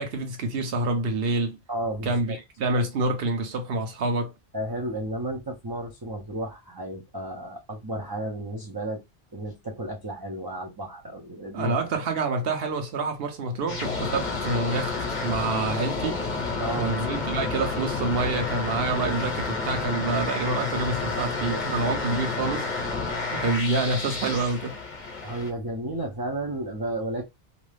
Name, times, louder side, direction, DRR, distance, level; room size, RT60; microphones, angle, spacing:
voice 1, 0.0-1.6 2.0-4.3 11.5-16.2 16.8-22.7 23.3-24.8, right 3 dB, 65° right, 0.9 m, -27 dB
voice 2, 1.7-2.4 4.5-9.0 9.3-11.8 16.6-17.0 21.5-21.6 25.2-27.2, right 1 dB, 40° right, 0.3 m, -33 dB
sound 1, 13.7-25.5, left 3 dB, 45° left, 0.9 m, -30 dB
2.6 x 2.2 x 3.2 m
omnidirectional pair, 1.1 m